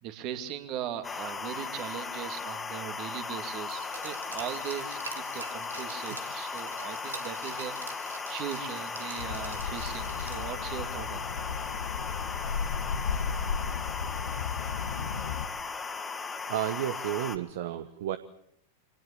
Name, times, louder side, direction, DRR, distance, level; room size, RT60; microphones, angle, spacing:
voice 1, 0.0-11.3, right 10 dB, 40° right, 8 dB, 2.8 m, -39 dB
sound 1, 1.0-17.4, left 4 dB, 15° left, 1.9 m, -37 dB
Glass, 3.7-10.6 11.0-11.1, right 4 dB, 75° right, 2.7 m, -45 dB
sound 2, 9.2-15.5, left 6 dB, 60° left, 1.5 m, -34 dB
voice 2, 16.5-18.2, right 12 dB, 55° right, 12 dB, 1.1 m, -32 dB
26.0 x 19.0 x 8.7 m, 0.71 s
figure-of-eight pair, 90°, 0 cm